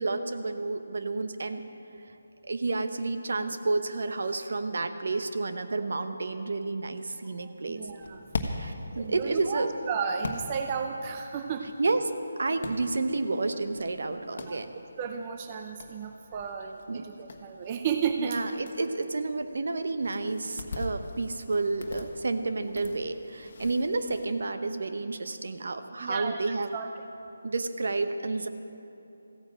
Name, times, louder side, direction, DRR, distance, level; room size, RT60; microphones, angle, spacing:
voice 1, 0.0-1.6 2.4-7.8 8.5-9.7 11.8-14.7 16.9-17.1 18.2-26.7 27.4-28.5, right 3 dB, 65° right, 8 dB, 1.0 m, -30 dB
voice 2, 7.4-8.2 8.9-11.7 14.5-14.6 15.0-18.4 26.0-26.4 26.7-26.9, right 6 dB, 25° right, 5 dB, 0.5 m, -33 dB
sound 1, 7.9-24.3, left 3 dB, 50° left, 1.3 m, -43 dB
15.0 x 9.6 x 7.6 m, 2.8 s
hypercardioid pair, 165°, 0 cm